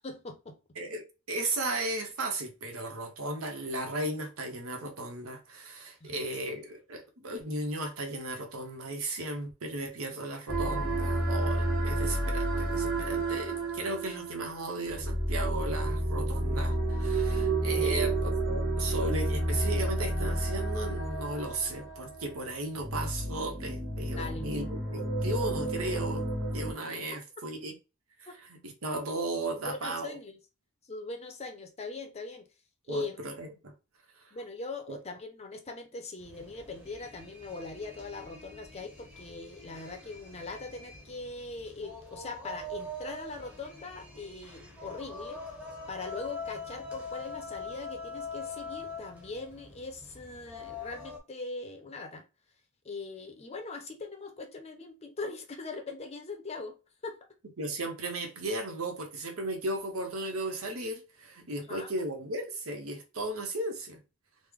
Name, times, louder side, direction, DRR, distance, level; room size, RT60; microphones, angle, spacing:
voice 1, 0.0-0.6 6.0-6.2 17.8-18.0 24.1-24.5 28.3-28.4 29.5-30.4 30.9-32.5 32.9-33.2 34.3-45.4 45.9-52.2 52.8-56.8 57.0-57.2 61.6-61.9, left 3 dB, 30° left, 0.5 m, -41 dB
voice 2, 0.8-24.6 24.9-26.2 26.5-27.7 28.2-30.2 32.9-33.7 34.1-34.2 34.9-35.0 57.6-64.0, right 2 dB, 90° right, 0.9 m, -35 dB
sound 1, 10.5-26.7, right 1 dB, 50° right, 1.5 m, -31 dB
sound 2, 36.2-51.2, left 3 dB, 5° right, 0.8 m, -43 dB
3.1 x 2.1 x 3.5 m
head